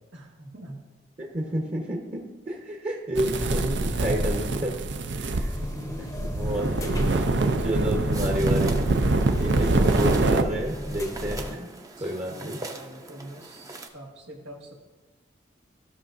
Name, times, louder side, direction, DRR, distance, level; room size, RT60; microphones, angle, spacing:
voice 1, 0.1-0.8 5.7-6.1 7.7-7.8 9.4-9.5 12.0-14.7, right 1 dB, 90° right, -3 dB, 1.6 m, -44 dB
voice 2, 1.2-4.7 5.1-5.5 6.0-7.2 7.6-8.8 9.3-11.7 12.0-12.6, equal, 35° right, 0 dB, 1.0 m, -30 dB
sound 1, 3.2-10.4, right 2 dB, 70° right, 0.6 m, -24 dB
sound 2, 5.4-11.5, equal, 15° left, 0.7 m, -36 dB
sound 3, 8.1-13.9, right 2 dB, 20° right, 0.6 m, -40 dB
15.0 x 6.3 x 2.6 m, 1.3 s
head